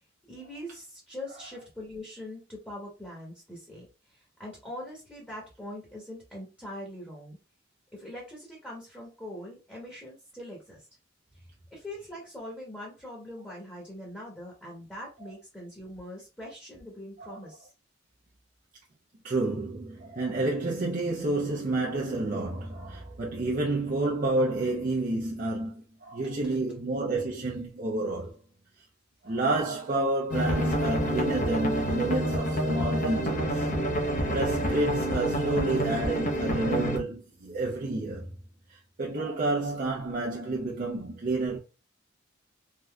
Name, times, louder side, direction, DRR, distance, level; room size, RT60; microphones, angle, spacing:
voice 1, 0.3-3.9 4.1-7.4 7.9-10.8 11.7-17.7, left 1 dB, 10° left, 1.0 m, -42 dB
voice 2, 19.2-28.4 29.2-33.7 34.3-38.3 38.7-41.6, right 2 dB, 45° right, 0.5 m, -30 dB
sound 1, 30.3-37.0, right 1 dB, 45° left, 0.8 m, -28 dB
3.4 x 2.6 x 2.3 m
head